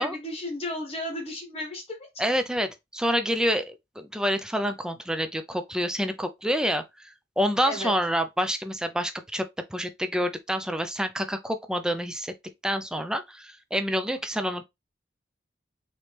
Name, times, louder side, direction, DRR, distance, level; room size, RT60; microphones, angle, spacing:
voice 1, 0.0-2.0 7.6-7.9, left 1 dB, 35° left, 1.0 m, -33 dB
voice 2, 2.2-9.4 9.7-12.3 12.6-14.6, equal, 5° right, 0.4 m, -28 dB
4.4 x 3.1 x 3.3 m
head